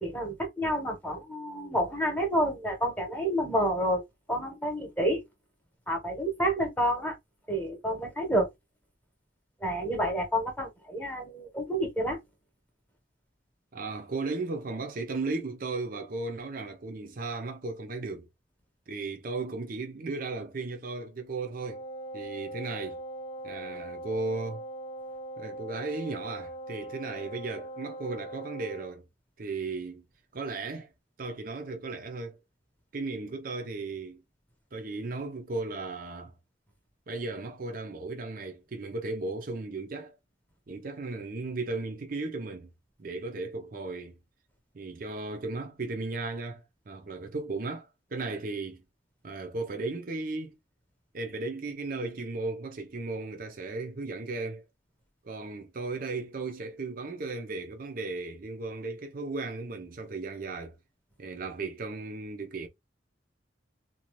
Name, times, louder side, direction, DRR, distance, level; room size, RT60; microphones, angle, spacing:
voice 1, 0.0-4.0 4.3-5.2 5.9-7.2 7.5-8.5 9.6-12.2, equal, 10° left, 1.0 m, -29 dB
voice 2, 13.7-18.3 18.9-21.8 22.1-23.0 23.4-24.6 25.4-29.0 29.4-30.0 30.3-30.9 31.2-32.4 32.9-34.2 34.7-36.3 37.1-40.2 40.7-42.7 43.0-44.2 44.7-48.8 49.2-50.6 51.1-54.6 55.2-60.8 61.2-62.7, right 3 dB, 50° right, 0.6 m, -35 dB
Wind instrument woodwind instrument, 21.6-28.9, right 1 dB, 30° left, 0.7 m, -41 dB
2.6 x 2.3 x 2.9 m
head